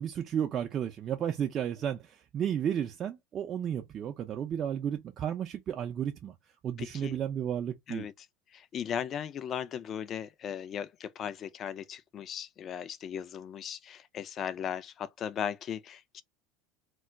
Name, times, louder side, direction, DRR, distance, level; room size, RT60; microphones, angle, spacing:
voice 1, 0.0-6.3 6.6-8.1, right 9 dB, 45° right, 0.5 m, -33 dB
voice 2, 6.8-7.2 7.9-8.1 8.5-16.2, left 8 dB, 45° left, 0.4 m, -37 dB
2.2 x 2.1 x 3.7 m
hypercardioid pair, 80°, 0 cm